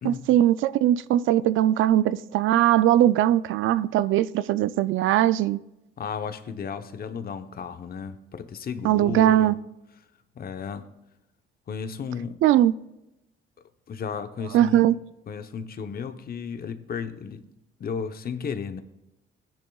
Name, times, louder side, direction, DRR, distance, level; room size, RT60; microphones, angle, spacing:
voice 1, 0.0-5.6 8.8-9.5 12.4-12.7 14.5-14.9, right 12 dB, 80° right, 0.4 m, -20 dB
voice 2, 6.0-9.6 10.4-10.9 11.7-12.4 13.9-14.9 15.3-17.4 17.8-18.8, left 6 dB, 50° left, 0.9 m, -34 dB
16.0 x 10.5 x 2.4 m
cardioid pair, 90°, 20 cm